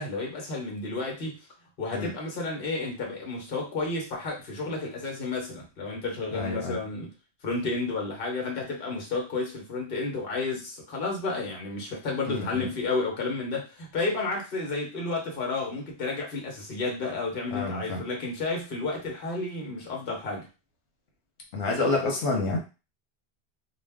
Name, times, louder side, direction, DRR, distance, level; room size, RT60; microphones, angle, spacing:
voice 1, 0.0-1.4 1.8-7.1 7.4-20.5, left 3 dB, 60° left, 0 dB, 1.1 m, -31 dB
voice 2, 6.3-6.8 12.3-12.7 17.5-18.0 21.5-22.6, left 2 dB, 85° left, 1 dB, 1.0 m, -28 dB
2.5 x 2.1 x 3.4 m, 0.30 s
omnidirectional pair, 1.1 m